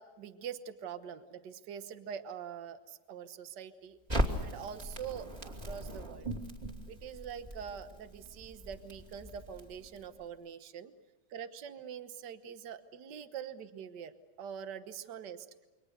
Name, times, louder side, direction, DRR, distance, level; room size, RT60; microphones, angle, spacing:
voice 1, 0.0-4.0 4.4-6.3 6.9-10.9 11.3-15.5, right 8 dB, 60° right, 10 dB, 1.7 m, -44 dB
Crackle, 4.1-10.2, equal, 20° right, 2.7 m, -38 dB
28.5 x 24.0 x 6.6 m, 1.2 s
omnidirectional pair, 2.2 m